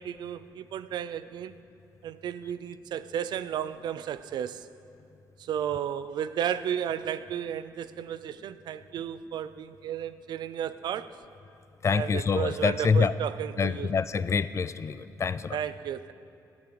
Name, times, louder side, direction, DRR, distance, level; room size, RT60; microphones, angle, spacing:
voice 1, 0.0-1.6 2.0-4.7 5.4-11.2 11.9-13.9 15.5-16.1, right 9 dB, 70° right, 0.4 m, -33 dB
voice 2, 11.8-13.1 13.6-15.6, left 5 dB, 40° left, 0.4 m, -26 dB
13.5 x 8.6 x 4.7 m
supercardioid pair, 65°, 8 cm